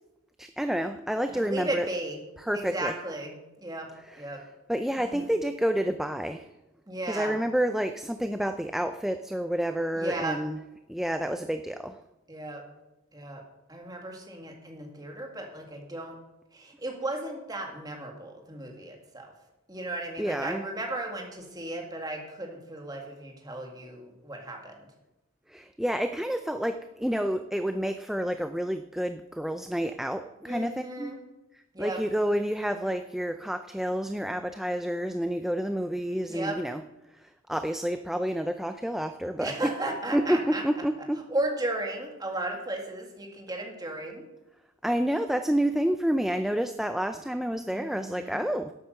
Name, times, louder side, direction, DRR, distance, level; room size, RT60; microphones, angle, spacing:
voice 1, 0.4-1.9 2.5-2.9 4.1-4.2 4.7-6.5 7.1-10.6 10.9-12.0 20.2-20.6 25.5-31.1 31.5-36.8 37.2-39.7 40.1-41.2 44.8-48.7, equal, ahead, 8 dB, 0.4 m, -29 dB
voice 2, 1.3-2.2 2.5-3.9 4.2-4.4 5.0-5.3 6.9-7.4 10.0-10.4 12.3-12.6 13.1-13.4 13.7-16.2 16.5-19.3 19.7-24.9 30.4-31.2 31.7-32.0 36.3-36.6 39.4-40.6 41.3-44.3 47.7-48.4, right 2 dB, 20° right, 1 dB, 2.1 m, -35 dB
11.5 x 8.6 x 6.5 m, 0.97 s
head